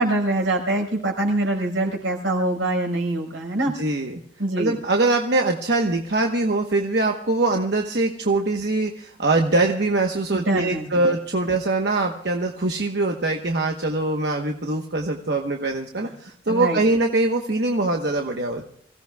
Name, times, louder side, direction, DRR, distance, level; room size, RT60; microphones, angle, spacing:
voice 1, 0.0-3.7 4.4-4.8 10.3-11.0 16.5-16.8, right 2 dB, 85° right, 1 dB, 5.0 m, -24 dB
voice 2, 3.7-4.2 4.6-18.6, right 2 dB, 60° right, 2 dB, 1.1 m, -23 dB
27.0 x 16.5 x 2.3 m, 0.63 s
head